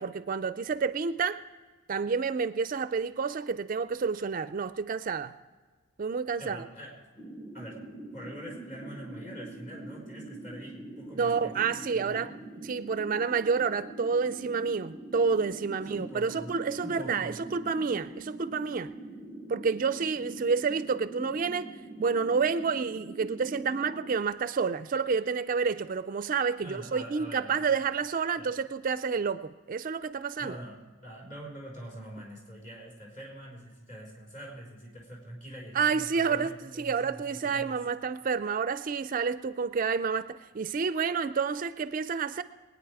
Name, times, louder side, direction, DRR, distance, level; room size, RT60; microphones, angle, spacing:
voice 1, 0.0-1.4 1.9-5.3 6.0-6.6 11.1-12.3 12.6-18.9 19.5-21.7 22.0-30.6 35.7-42.4, right 5 dB, 45° right, 14 dB, 0.4 m, -29 dB
voice 2, 6.4-7.0 7.5-7.8 8.1-12.3 15.7-17.3 26.6-27.8 28.3-28.5 30.4-37.8, equal, 40° left, -1 dB, 4.4 m, -45 dB
sound 1, 7.2-24.2, right 1 dB, ahead, 0.8 m, -44 dB
21.5 x 9.4 x 4.8 m, 1.3 s
head